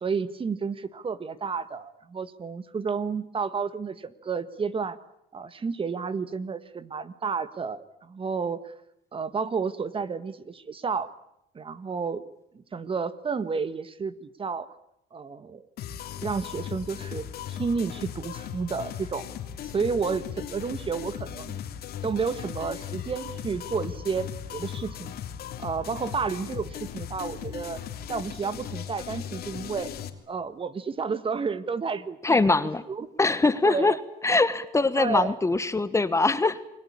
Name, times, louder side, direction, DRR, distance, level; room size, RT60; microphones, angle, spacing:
voice 1, 0.0-5.0 5.3-8.7 9.1-11.1 11.5-12.2 12.5-14.7 15.1-15.7 16.2-19.3 19.6-21.6 22.0-25.1 25.6-27.8 28.1-29.9 30.3-32.4 32.9-33.1 33.6-34.0 34.3-34.4 35.0-35.3, right 5 dB, 30° right, 14 dB, 1.6 m, -31 dB
sound 1, 15.8-30.1, left 9 dB, 65° left, 3.0 m, -37 dB
voice 2, 32.2-32.8 33.2-34.0 34.2-36.6, left 3 dB, 15° left, 13 dB, 1.4 m, -22 dB
29.0 x 21.5 x 8.7 m, 0.80 s
cardioid pair, 110°, 17 cm